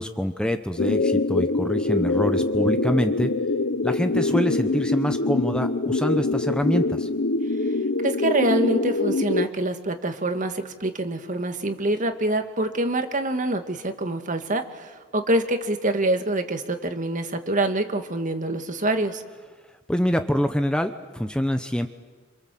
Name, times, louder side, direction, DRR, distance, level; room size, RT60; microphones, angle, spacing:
voice 1, 0.0-3.3 3.8-7.1 19.9-21.9, equal, 5° left, 8 dB, 0.9 m, -25 dB
sound 1, 0.8-9.5, left 2 dB, 70° left, 0.8 m, -24 dB
voice 2, 8.0-19.2, right 1 dB, 40° right, 7 dB, 1.9 m, -25 dB
27.5 x 27.0 x 7.7 m, 1.4 s
head